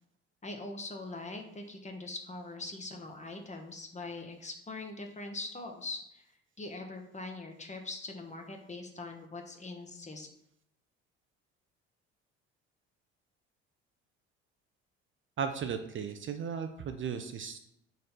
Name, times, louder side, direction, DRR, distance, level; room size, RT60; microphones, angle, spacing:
voice 1, 0.4-6.2 6.6-10.3, left 2 dB, 20° left, 4 dB, 1.0 m, -42 dB
voice 2, 15.4-17.6, right 6 dB, 40° right, 7 dB, 0.5 m, -36 dB
3.9 x 3.2 x 4.3 m, 0.77 s
hypercardioid pair, 60°, 32 cm